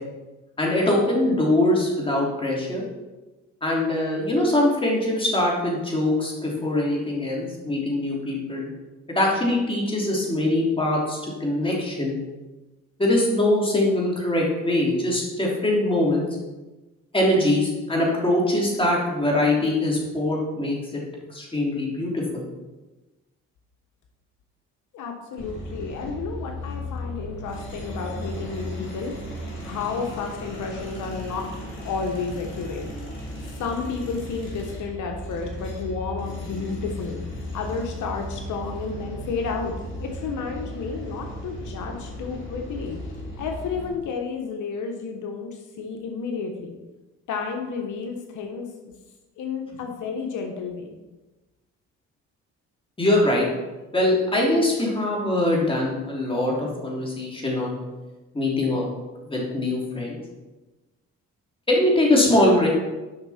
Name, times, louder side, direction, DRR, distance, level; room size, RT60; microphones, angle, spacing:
voice 1, 0.6-2.8 3.6-8.7 9.1-12.1 13.0-16.3 17.1-21.0 21.3-22.4 53.0-53.5 53.9-57.8 58.3-58.8 59.2-60.2 61.7-62.7, left 1 dB, 15° left, -3 dB, 3.1 m, -22 dB
voice 2, 24.9-31.5 31.8-32.9 33.6-37.2 37.5-39.7 40.0-43.0 43.4-46.8 47.3-48.9 49.4-51.0, left 5 dB, 80° left, 3 dB, 1.2 m, -31 dB
sound 1, 25.4-43.9, equal, 40° left, 3.4 m, -35 dB
11.0 x 5.8 x 4.3 m, 1.1 s
cardioid pair, 90°, 30 cm